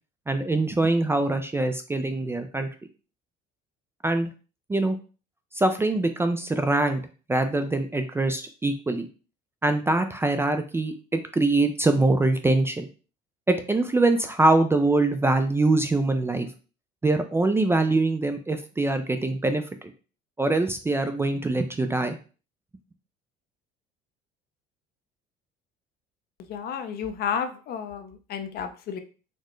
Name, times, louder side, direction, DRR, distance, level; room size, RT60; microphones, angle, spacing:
voice 1, 0.3-2.7 4.0-4.3 4.7-5.0 5.5-7.0 7.3-9.1 9.6-12.9 13.5-16.5 17.0-19.9 20.4-22.2, right 2 dB, 15° right, 7 dB, 0.3 m, -23 dB
voice 2, 26.5-29.0, left 7 dB, 55° left, 8 dB, 0.5 m, -31 dB
4.1 x 2.0 x 3.1 m, 0.36 s
cardioid pair, 110°, 19 cm